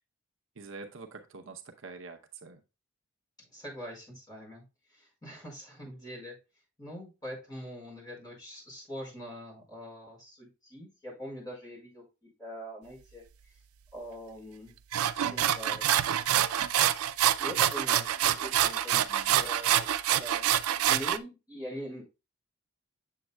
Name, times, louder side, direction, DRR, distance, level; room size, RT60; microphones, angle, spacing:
voice 1, 0.6-2.6 18.9-19.4, right 4 dB, 60° right, 5 dB, 0.7 m, -46 dB
voice 2, 3.5-4.6 4.9-6.4 6.8-13.5 13.9-14.7 15.2-15.8 17.2-20.4 20.8-22.0, equal, 20° left, -2 dB, 4.5 m, -43 dB
Grating a carrot, 14.9-21.2, right 11 dB, 85° right, 0.4 m, -26 dB
7.5 x 7.1 x 2.2 m, 0.28 s
head